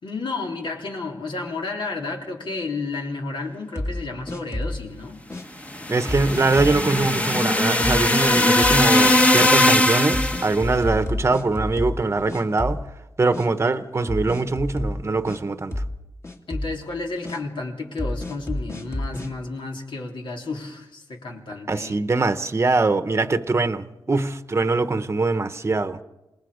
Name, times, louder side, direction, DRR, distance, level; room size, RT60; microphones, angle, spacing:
voice 1, 0.0-5.2 16.5-22.0, left 3 dB, 75° left, 3.5 m, -32 dB
sound 1, 3.7-4.9 5.3-5.4 6.1-6.8 7.3-7.5 7.8-8.1 8.3-8.9 9.4-9.5 10.1-12.0 12.3-13.0 13.3-13.5 14.1-15.4 15.7-16.0 16.2-16.8 17.2-17.4 18.0-19.3, left 1 dB, 35° left, 2.4 m, -29 dB
sound 2, 5.7-10.6, left 1 dB, 15° left, 1.1 m, -19 dB
voice 2, 5.9-12.8 13.2-15.8 21.7-26.0, right 3 dB, 30° right, 0.9 m, -23 dB
27.5 x 20.5 x 5.0 m
wide cardioid pair, 115°, 9 cm